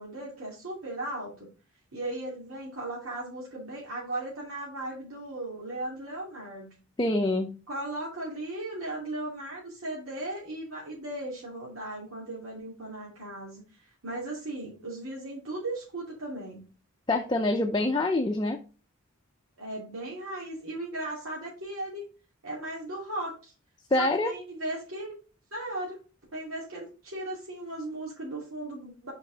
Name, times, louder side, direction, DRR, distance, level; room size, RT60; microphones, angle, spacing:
voice 1, 0.0-1.5 1.9-6.8 7.7-13.6 14.0-16.6 19.6-22.0 22.4-23.5 24.0-25.1 25.5-26.0 26.3-29.1, right 1 dB, 90° right, -5 dB, 2.6 m, -37 dB
voice 2, 7.0-7.6 17.1-18.6 23.9-24.3, left 2 dB, 20° left, 3 dB, 0.5 m, -25 dB
5.2 x 5.1 x 4.0 m, 0.34 s
head